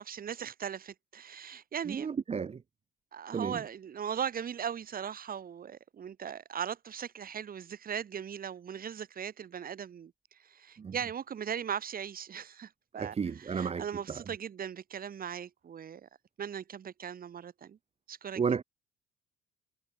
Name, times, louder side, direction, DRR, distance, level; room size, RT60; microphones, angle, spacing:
voice 1, 0.0-2.1 3.1-10.1 10.4-16.1 16.4-17.8 18.1-18.4, right 8 dB, 45° right, 3.6 m, -39 dB
voice 2, 1.9-2.6 3.3-3.6 10.8-11.0 13.0-14.2 18.4-18.6, right 6 dB, 30° right, 1.0 m, -33 dB
supercardioid pair, 75°, 20 cm